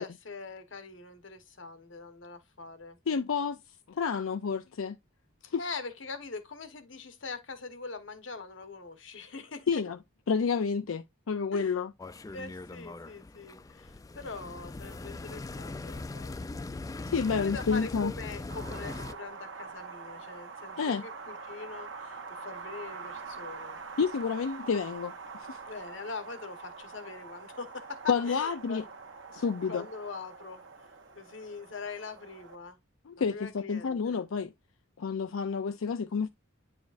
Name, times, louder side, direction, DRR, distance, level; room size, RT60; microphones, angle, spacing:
voice 1, 0.0-3.0 5.6-9.8 11.5-11.7 12.3-16.4 17.3-23.8 25.7-28.8 29.7-30.9 31.2-32.8 33.2-34.2, left 4 dB, 65° left, 1.2 m, -42 dB
voice 2, 3.1-3.6 3.9-5.0 5.5-5.6 9.7-10.0 10.3-11.9 17.1-18.1 20.8-21.0 24.0-25.1 25.5-25.6 28.1-28.8 29.3-29.8 33.1-34.5 35.0-36.3, left 5 dB, 90° left, 0.5 m, -29 dB
sound 1, 12.0-19.1, left 3 dB, 15° left, 0.3 m, -40 dB
Wind, 18.5-32.5, right 4 dB, 65° right, 1.1 m, -45 dB
9.3 x 5.0 x 2.5 m
head